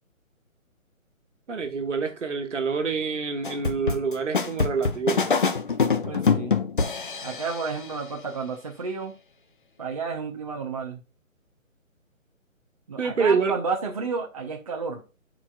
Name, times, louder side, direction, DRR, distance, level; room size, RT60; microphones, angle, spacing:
voice 1, 1.5-5.4 13.0-13.6, right 5 dB, 60° right, 1.5 m, -26 dB
sound 1, 3.4-7.8, left 5 dB, 40° left, 0.5 m, -25 dB
voice 2, 6.0-6.6 7.2-9.2 9.8-11.0 12.9-15.0, right 4 dB, 25° right, 0.7 m, -31 dB
13.0 x 4.7 x 2.2 m
figure-of-eight pair, 155°, 41 cm